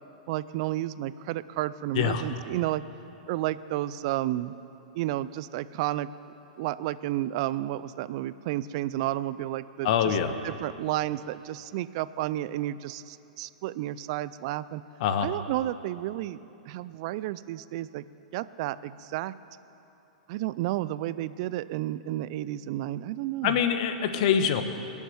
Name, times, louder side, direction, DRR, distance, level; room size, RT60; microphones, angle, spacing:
voice 1, 0.3-2.8 3.3-4.6 4.9-6.1 6.6-10.2 10.4-14.8 15.2-16.4 16.7-18.0 18.3-19.3 20.3-23.6, right 15 dB, 50° right, 16 dB, 0.5 m, -31 dB
voice 2, 9.8-10.3 15.0-15.3 23.4-24.6, left 8 dB, 55° left, 9 dB, 1.2 m, -24 dB
21.0 x 7.3 x 7.7 m, 3.0 s
hypercardioid pair, 110°, 4 cm